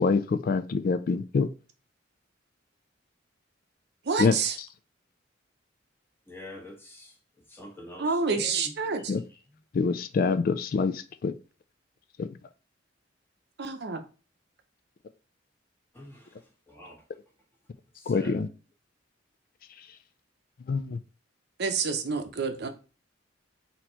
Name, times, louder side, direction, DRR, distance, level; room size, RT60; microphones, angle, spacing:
voice 1, 0.0-1.5 4.2-4.4 9.1-9.2 9.7-11.3 12.2-12.3 18.1-18.5 20.7-21.0, left 4 dB, 50° left, 0.3 m, -25 dB
voice 2, 4.1-4.6 8.0-9.0 13.6-14.0 21.6-22.7, right 4 dB, 60° right, 0.7 m, -28 dB
voice 3, 6.3-7.2 7.5-9.6 15.9-17.0 18.0-18.4, left 1 dB, 10° left, 1.3 m, -46 dB
4.3 x 2.9 x 4.3 m
head